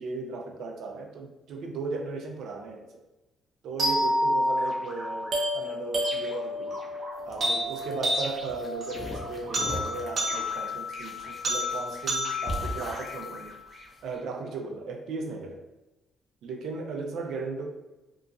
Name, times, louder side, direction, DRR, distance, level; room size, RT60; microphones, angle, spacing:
voice 1, 0.0-3.0 3.6-6.8 7.2-13.6 14.0-15.7 16.4-17.7, right 3 dB, 75° right, 3 dB, 0.4 m, -36 dB
sound 1, 3.8-13.8, equal, 50° right, 0.7 m, -30 dB
sound 2, 7.2-14.0, equal, 35° left, 0.6 m, -40 dB
2.8 x 2.5 x 2.4 m, 1.0 s
cardioid pair, 90°, 0 cm